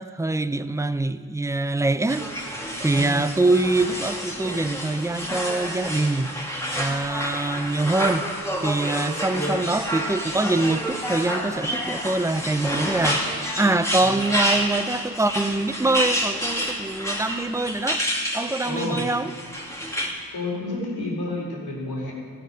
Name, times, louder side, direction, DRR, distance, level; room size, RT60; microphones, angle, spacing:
voice 1, 0.0-2.3 2.8-6.4 6.8-8.3 8.6-13.2 13.6-18.0 18.3-19.3, right 2 dB, 10° right, 13 dB, 0.5 m, -24 dB
sound 1, 2.1-20.1, equal, 5° left, 2.4 m, -29 dB
voice 2, 2.9-3.2 9.0-9.6 14.0-14.2 18.6-19.1 20.3-22.1, left 1 dB, 70° left, -3 dB, 4.2 m, -30 dB
16.0 x 8.1 x 6.3 m, 2.1 s
cardioid pair, 65°, 38 cm